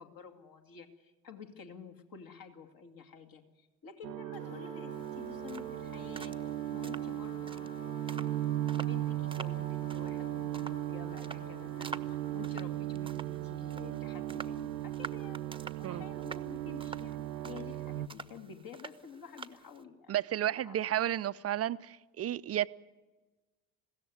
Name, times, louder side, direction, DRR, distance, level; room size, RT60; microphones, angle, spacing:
voice 1, 0.0-6.4 6.7-7.7 8.8-20.1 20.6-20.8, left 6 dB, 40° left, 2.5 m, -50 dB
sound 1, 4.0-18.1, right 14 dB, 90° right, 0.7 m, -37 dB
sound 2, 4.3-12.8, left 7 dB, 75° left, 1.2 m, -52 dB
sound 3, 4.9-19.8, right 4 dB, 10° right, 1.0 m, -49 dB
voice 2, 20.1-22.7, right 11 dB, 30° right, 0.6 m, -32 dB
21.0 x 16.5 x 9.4 m
hypercardioid pair, 60°, 50 cm